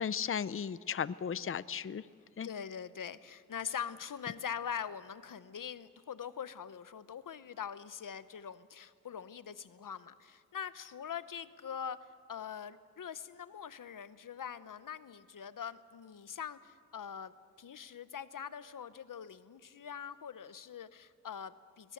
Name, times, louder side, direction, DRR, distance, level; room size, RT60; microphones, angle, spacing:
voice 1, 0.0-2.0 2.4-2.5, left 7 dB, 45° left, 18 dB, 0.5 m, -35 dB
voice 2, 2.4-21.9, left 8 dB, 90° left, 15 dB, 0.8 m, -43 dB
21.5 x 20.5 x 7.9 m, 2.1 s
wide cardioid pair, 90°, 31 cm